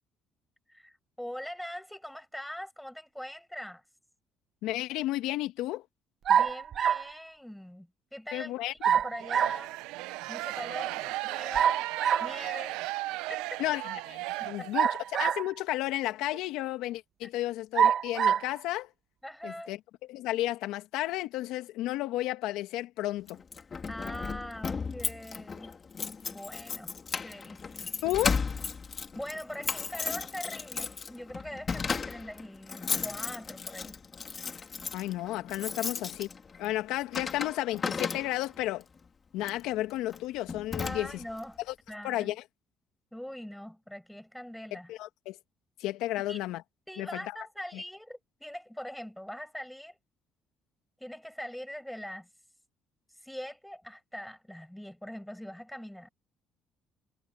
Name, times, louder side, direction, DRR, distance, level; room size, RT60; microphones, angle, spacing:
voice 1, 0.7-3.8 6.3-9.8 10.3-11.9 12.2-12.8 13.3-13.6 14.4-14.9 17.2-17.3 19.2-19.8 23.9-25.7 26.3-26.9 27.2-27.9 29.1-33.9 40.8-41.6 41.9-42.4 43.1-44.9 46.2-46.4 46.9-50.0 51.0-52.3 53.2-56.1, equal, 5° left, 6.5 m, -42 dB
voice 2, 4.6-5.8 8.3-9.0 13.6-13.8 14.1-14.2 14.4-18.9 19.4-19.8 20.1-23.4 28.0-28.4 34.9-36.3 36.6-38.8 39.3-41.1 41.7-41.8 42.0-42.4 44.9-45.4 45.8-46.6 47.0-47.2 47.7-47.8, left 16 dB, 80° left, 2.0 m, -32 dB
sound 1, 6.3-7.1 8.8-9.6 11.5-12.3 14.7-15.6 16.3-16.4 17.7-18.5, right 8 dB, 55° right, 1.3 m, -25 dB
sound 2, 9.2-15.1, right 19 dB, 85° right, 0.9 m, -36 dB
Keys jangling, 23.3-38.6 39.4-39.7 40.1-40.2 40.5-41.4, left 5 dB, 35° left, 2.6 m, -35 dB
supercardioid pair, 75°, 0 cm